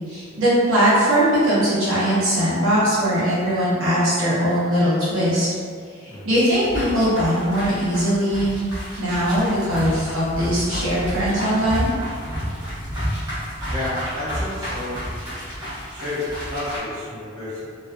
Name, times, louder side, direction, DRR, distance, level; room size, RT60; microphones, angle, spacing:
voice 1, 0.1-5.5 6.0-8.6 9.0-11.9, equal, 90° right, -11 dB, 0.8 m, -20 dB
sound 1, 6.5-16.8, equal, 20° right, 0.9 m, -30 dB
voice 2, 13.7-15.0 15.9-17.6, left 2 dB, 45° right, -11 dB, 1.2 m, -30 dB
2.4 x 2.3 x 2.3 m, 2.1 s
head